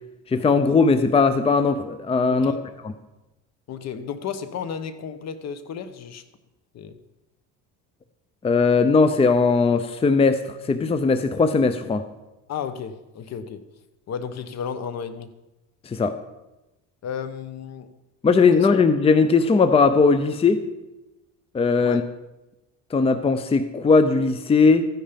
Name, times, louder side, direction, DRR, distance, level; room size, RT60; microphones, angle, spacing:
voice 1, 0.3-2.5 2.8-2.9 8.4-12.0 15.8-16.2 18.2-20.6 21.5-22.0 22.9-24.9, left 4 dB, 20° left, 10 dB, 0.6 m, -19 dB
voice 2, 3.7-6.2 6.7-7.0 12.5-13.6 14.1-15.3 17.0-17.9 18.5-18.7 21.8-22.0, left 7 dB, 50° left, 12 dB, 1.1 m, -33 dB
14.0 x 10.0 x 5.2 m, 0.99 s
cardioid pair, 125°, 33 cm